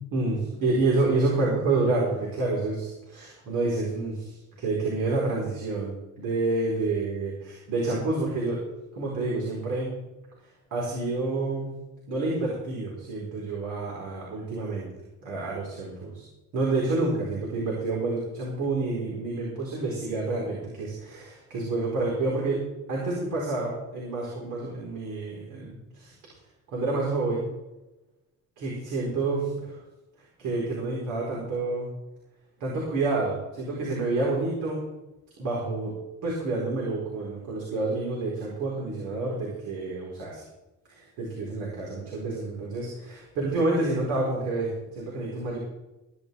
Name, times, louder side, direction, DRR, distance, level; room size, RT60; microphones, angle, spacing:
voice 1, 0.1-8.6 8.9-9.9 10.7-11.7 12.1-14.9 15.2-16.2 16.5-22.6 22.9-26.1 26.7-27.5 28.6-29.8 30.4-31.9 32.6-34.8 35.4-35.9 36.2-40.4 40.9-45.6, right 2 dB, 90° right, -4 dB, 4.4 m, -28 dB
19.0 x 11.0 x 3.5 m, 1.0 s
cardioid pair, 90°, 30 cm